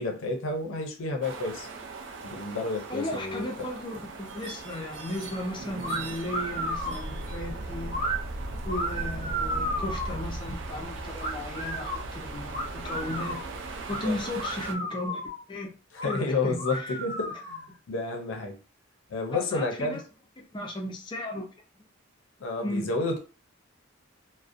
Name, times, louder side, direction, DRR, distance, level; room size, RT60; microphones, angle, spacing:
voice 1, 0.0-1.7 2.2-3.7 14.0-14.2 15.9-17.6 17.9-18.5 19.1-20.0 22.4-23.2, left 3 dB, 75° left, 0.5 m, -30 dB
sound 1, 1.2-14.7, right 2 dB, 60° right, 0.4 m, -38 dB
voice 2, 2.9-8.0 8.6-13.4 13.9-15.2 15.5-15.7 16.0-16.9 19.3-20.0 20.4-21.5 22.6-22.8, left 1 dB, 25° left, 0.4 m, -35 dB
sound 2, 5.8-6.0 6.3-7.0 7.9-8.2 8.7-10.2 11.2-12.0 12.5-13.4 13.9-14.0 14.3-15.4 15.9-16.2 16.6-17.7, equal, 40° right, 1.2 m, -33 dB
2.5 x 2.0 x 2.4 m
head